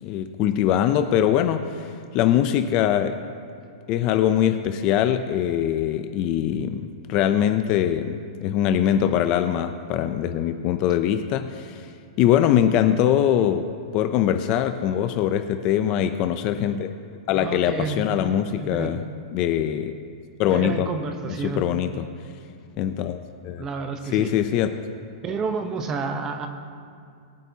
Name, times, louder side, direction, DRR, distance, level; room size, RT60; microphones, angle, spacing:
voice 1, 0.0-3.2 3.9-11.9 12.2-16.9 17.3-19.0 19.3-19.9 20.4-20.9 21.4-22.1 22.8-23.7 24.1-24.7, left 10 dB, 25° left, 8 dB, 0.4 m, -22 dB
voice 2, 17.4-18.0 18.5-19.0 20.5-21.6 23.6-24.3 25.2-26.5, right 4 dB, 15° right, 7 dB, 0.7 m, -30 dB
22.5 x 8.4 x 2.8 m, 2.4 s
supercardioid pair, 175°, 3 cm